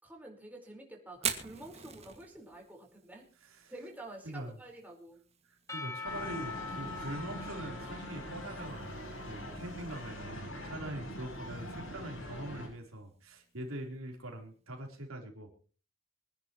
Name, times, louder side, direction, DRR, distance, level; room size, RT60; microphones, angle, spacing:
voice 1, 0.0-3.2 3.7-5.2 9.3-10.1 10.8-10.9, right 1 dB, 10° right, -1 dB, 4.6 m, -49 dB
Fire, 1.1-15.0, right 7 dB, 30° right, 2.1 m, -47 dB
voice 2, 3.4-3.7 4.2-4.6 5.5-15.5, right 1 dB, 90° right, 2 dB, 3.8 m, -43 dB
Percussion / Church bell, 5.7-9.7, left 4 dB, 15° left, 1.8 m, -44 dB
sound 1, 6.0-12.7, equal, 75° left, 7.7 m, -43 dB
25.0 x 11.0 x 3.1 m, 0.39 s
head